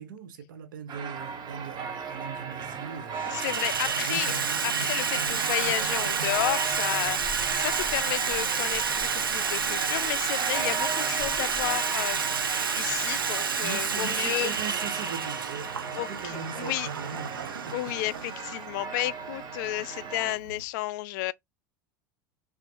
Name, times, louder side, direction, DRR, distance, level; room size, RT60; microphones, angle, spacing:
voice 1, 0.0-4.3 13.6-18.0, right 7 dB, 70° right, 1.0 m, -40 dB
sound 1, 0.9-20.4, right 5 dB, 40° right, 1.1 m, -37 dB
Water tap faucet / Sink (filling or washing), 1.3-1.4 2.3-2.7 3.0-20.6, right 6 dB, 85° right, 0.5 m, -30 dB
sound 2, 3.1-13.2, equal, 25° right, 2.1 m, -49 dB
voice 2, 3.3-4.3 4.6-14.5 16.0-16.9 17.7-21.3, left 18 dB, 60° left, 0.4 m, -32 dB
5.8 x 2.4 x 2.9 m
figure-of-eight pair, 80°, 11 cm